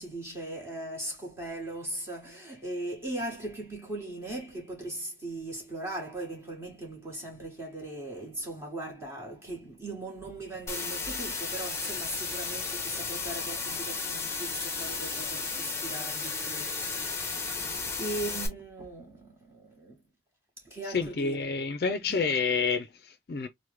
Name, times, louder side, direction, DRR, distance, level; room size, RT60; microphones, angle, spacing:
voice 1, 0.0-20.0 20.6-21.5 22.0-22.4, right 2 dB, 15° right, 1.2 m, -39 dB
sound 1, 10.7-18.5, left 4 dB, 15° left, 0.7 m, -34 dB
voice 2, 20.9-23.5, left 5 dB, 55° left, 0.4 m, -29 dB
3.1 x 2.1 x 3.1 m
head